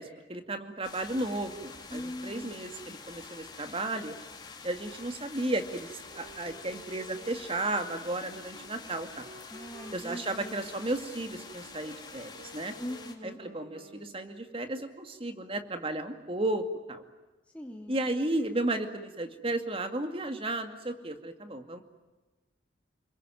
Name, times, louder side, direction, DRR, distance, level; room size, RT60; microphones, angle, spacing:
voice 1, 0.0-4.1 4.6-9.3 9.9-12.7 13.2-17.0 17.9-21.8, right 2 dB, 30° right, 7 dB, 2.2 m, -34 dB
sound 1, 0.8-13.1, left 4 dB, 25° left, 3.2 m, -47 dB
voice 2, 1.9-2.5 9.5-10.7 12.8-13.4 17.5-18.0, equal, 5° left, 1 dB, 2.3 m, -41 dB
sound 2, 6.1-14.5, right 1 dB, 50° right, 3.1 m, -52 dB
30.0 x 21.5 x 9.2 m, 1.2 s
head